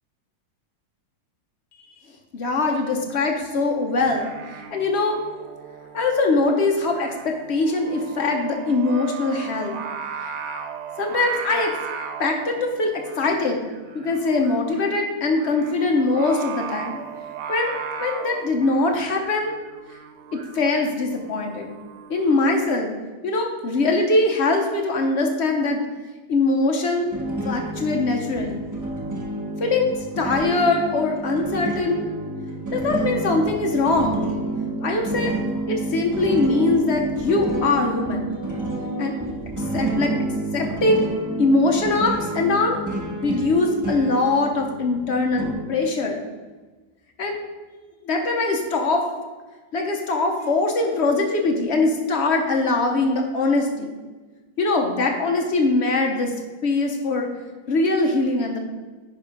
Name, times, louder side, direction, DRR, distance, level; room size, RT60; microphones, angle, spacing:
voice 1, 2.3-5.2 5.9-9.8 10.2-10.3 11.0-11.7 12.2-13.6 13.9-17.0 17.5-19.5 20.3-21.7 22.1-22.9 23.2-25.8 26.3-27.1 27.4-28.6 29.6-32.0 32.7-34.3 34.8-35.3 35.7-38.3 39.0-39.1 39.6-40.1 40.5-41.1 41.4-42.8 43.2-46.2 47.2-47.4 48.0-49.1 49.7-53.9 54.6-56.3 56.6-57.3 57.7-58.6, left 3 dB, 70° left, 2 dB, 0.6 m, -22 dB
Singing, 4.0-22.5, right 7 dB, 85° right, 1.5 m, -37 dB
sound 1, 27.1-45.5, right 2 dB, 15° right, 0.7 m, -29 dB
10.5 x 3.5 x 5.1 m, 1.3 s
omnidirectional pair, 2.3 m